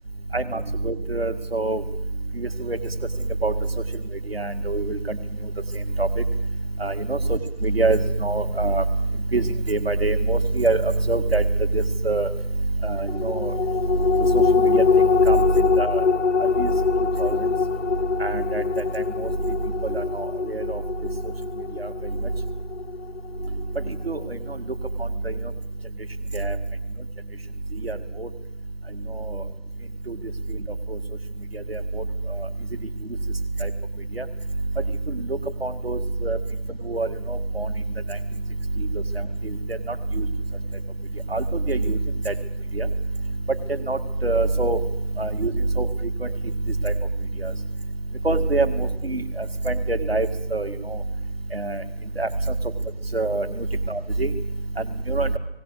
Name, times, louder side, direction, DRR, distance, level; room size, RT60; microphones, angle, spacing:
voice 1, 0.3-1.8 2.4-2.8 3.4-3.5 4.3-5.2 6.0-6.2 6.8-8.8 9.3-11.4 11.7-12.3 12.8-13.6 14.2-16.0 16.4-16.7 17.2-17.4 18.2-19.3 19.8-20.8 21.8-21.9 24.0-24.6 25.0-25.3 26.3-26.6 27.8-28.3 29.1-29.4 30.1-30.2 30.9-31.0 31.5-32.0 32.4-32.5 33.6-33.7 34.2-34.3 35.1-36.4 36.8-37.7 38.1-38.2 38.8-38.9 39.4-40.3 41.3-42.0 42.3-42.4 42.7-42.9 43.5-43.6 43.9-44.8 45.2-45.5 45.8-45.9 46.2-46.3 46.8-46.9 47.4-47.5 48.2-51.0 51.5-51.8 52.2-52.5 53.1-54.3 54.8-55.4, right 3 dB, 60° right, 9 dB, 2.3 m, -25 dB
sound 1, 13.1-23.9 24.3-24.4, left 5 dB, 90° left, 0.7 m, -23 dB
19.0 x 18.0 x 8.0 m, 0.79 s
figure-of-eight pair, 170°, 34 cm